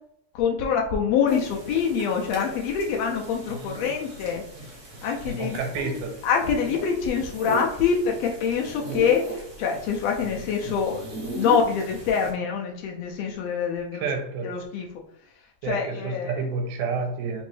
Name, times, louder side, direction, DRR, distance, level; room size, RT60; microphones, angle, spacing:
voice 1, 0.3-4.4 5.0-5.9 6.2-11.1 11.4-14.0 14.4-14.9 15.7-16.4, left 6 dB, 80° left, 1 dB, 1.5 m, -25 dB
sound 1, 1.3-12.3, right 1 dB, 55° right, 0.9 m, -37 dB
voice 2, 5.4-6.2 13.9-14.6 15.6-17.4, right 4 dB, 90° right, 4 dB, 2.1 m, -29 dB
4.3 x 3.0 x 3.2 m, 0.71 s
omnidirectional pair, 3.3 m